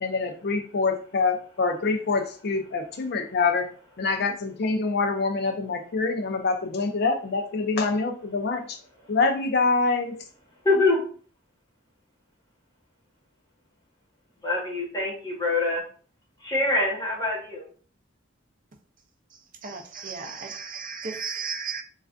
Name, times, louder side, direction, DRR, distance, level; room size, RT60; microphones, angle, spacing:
voice 1, 0.0-3.7 4.0-8.8 9.1-10.2, left 4 dB, 55° left, 0.4 m, -25 dB
voice 2, 10.6-11.0 14.4-15.8 16.4-17.6, left 2 dB, 20° left, 1.0 m, -24 dB
voice 3, 19.6-21.8, right 5 dB, 45° right, 0.5 m, -34 dB
3.2 x 2.4 x 2.4 m
head